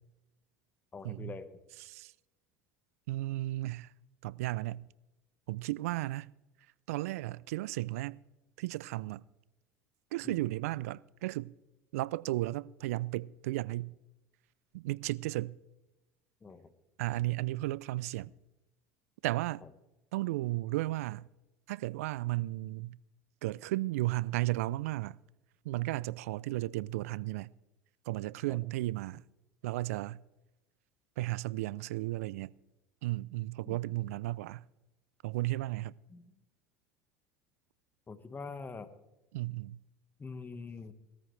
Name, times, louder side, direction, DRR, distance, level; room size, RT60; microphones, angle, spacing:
voice 1, 0.9-1.5 10.2-10.4 16.4-16.7 28.5-28.6 33.6-33.8 36.1-36.3 38.1-38.9 40.2-40.9, left 4 dB, 25° left, 1.4 m, -44 dB
voice 2, 3.1-3.9 4.2-4.9 5.5-6.3 6.9-8.2 8.6-9.2 10.1-11.5 11.9-13.9 14.7-15.6 17.0-18.3 19.2-19.6 20.1-21.3 21.7-23.0 23.4-25.2 25.6-27.5 28.1-29.2 29.6-30.2 31.2-32.5 33.0-34.6 35.2-35.9 39.3-39.8, right 17 dB, 80° right, 0.4 m, -34 dB
18.5 x 14.0 x 3.3 m
hypercardioid pair, 85°, 8 cm